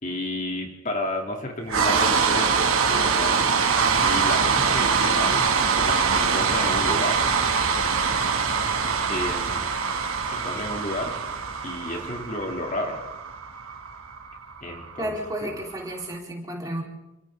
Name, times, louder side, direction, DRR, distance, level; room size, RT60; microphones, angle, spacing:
voice 1, 0.0-3.5 4.0-5.5 5.7-7.2 8.7-9.7 10.3-11.2 11.6-13.0 14.6-15.1 15.4-15.5, left 1 dB, 35° left, 1 dB, 3.2 m, -31 dB
sound 1, 1.7-15.8, right 5 dB, 85° right, 2.5 m, -23 dB
voice 2, 15.0-16.8, right 1 dB, 15° right, -1 dB, 4.5 m, -32 dB
29.5 x 27.0 x 3.9 m, 0.98 s
head